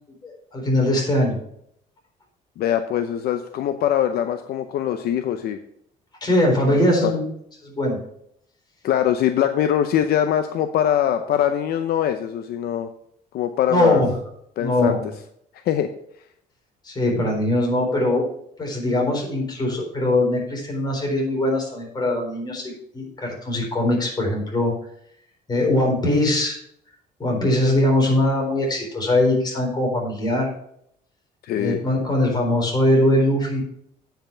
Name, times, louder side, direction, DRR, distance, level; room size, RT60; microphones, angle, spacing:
voice 1, 0.2-1.4 6.2-7.2 7.6-8.0 13.7-14.1 14.6-15.0 16.8-18.3 18.6-24.7 25.5-26.6 27.2-30.5 31.5-33.6, left 1 dB, 25° left, -1 dB, 4.1 m, -21 dB
voice 2, 2.6-5.6 7.0-7.1 8.8-12.9 13.3-14.0 14.6-15.1 15.6-15.9 31.4-31.8, left 10 dB, 65° left, 8 dB, 0.7 m, -22 dB
9.0 x 5.7 x 5.7 m, 0.70 s
cardioid pair, 110°, 17 cm